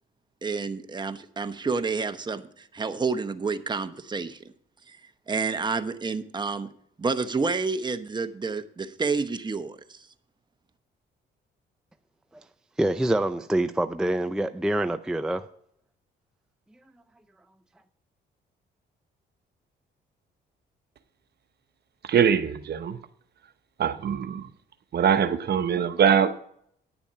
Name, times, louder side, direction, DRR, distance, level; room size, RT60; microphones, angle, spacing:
voice 1, 0.4-4.4 4.9-5.0 5.3-6.7 7.0-10.0, right 4 dB, 20° right, 0.9 m, -29 dB
voice 2, 12.8-15.5, right 1 dB, 5° right, 0.4 m, -26 dB
voice 3, 22.0-23.0 23.8-24.5 24.9-26.4, right 8 dB, 55° right, 0.9 m, -23 dB
10.0 x 7.0 x 5.6 m
cardioid pair, 90°, 20 cm